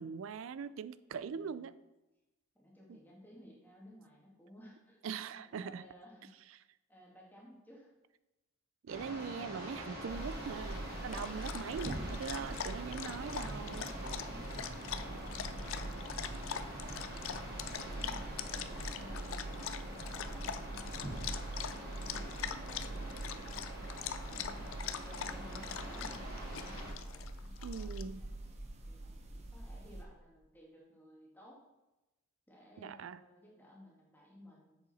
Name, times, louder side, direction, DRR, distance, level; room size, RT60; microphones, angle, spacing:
voice 1, 0.0-1.7 2.9-3.0 5.0-5.8 8.8-13.9 15.1-15.2 27.6-28.2 32.8-33.2, right 6 dB, 65° right, 15 dB, 0.4 m, -42 dB
voice 2, 1.2-1.6 2.5-5.0 5.4-6.3 6.9-7.9 15.0-18.4 19.0-19.7 20.1-21.3 22.0-31.6 32.5-34.8, equal, 10° left, -3 dB, 1.7 m, -58 dB
sound 1, 8.9-26.9, right 1 dB, 45° right, 2.3 m, -46 dB
sound 2, 10.1-30.0, right 1 dB, 30° right, 0.8 m, -44 dB
Dog, 10.6-28.0, left 8 dB, 65° left, 0.4 m, -43 dB
7.7 x 6.5 x 4.1 m, 1.0 s
head